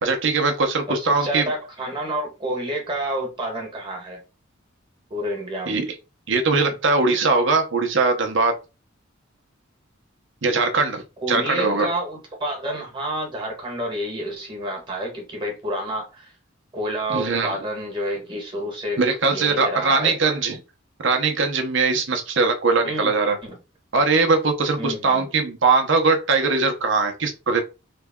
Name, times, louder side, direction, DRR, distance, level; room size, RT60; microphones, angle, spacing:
voice 1, 0.0-1.4 5.7-5.9 6.3-8.5 10.4-11.0 11.3-11.9 17.1-17.6 19.0-20.6 21.0-23.4 23.9-27.6, right 4 dB, 65° right, 0.8 m, -21 dB
voice 2, 0.9-4.2 5.1-5.9 11.2-16.3 16.7-19.0 19.3-20.1 22.8-23.1 23.4-23.6 24.8-25.3, right 1 dB, 25° right, 1.4 m, -29 dB
3.3 x 2.3 x 3.5 m
head